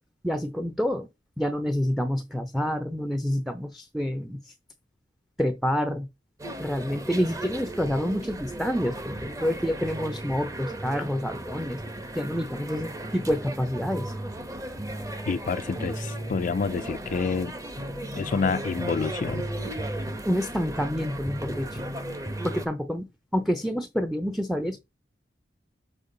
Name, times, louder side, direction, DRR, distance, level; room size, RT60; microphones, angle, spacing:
voice 1, 0.2-1.1 1.4-4.5 5.4-6.1 6.6-11.8 12.1-14.1 20.3-21.8 22.4-24.8, equal, ahead, 0.6 m, -28 dB
sound 1, 6.4-22.7, right 1 dB, 20° right, 0.9 m, -35 dB
voice 2, 15.3-17.5 18.1-19.5, left 5 dB, 50° left, 0.3 m, -28 dB
6.9 x 4.4 x 3.8 m
head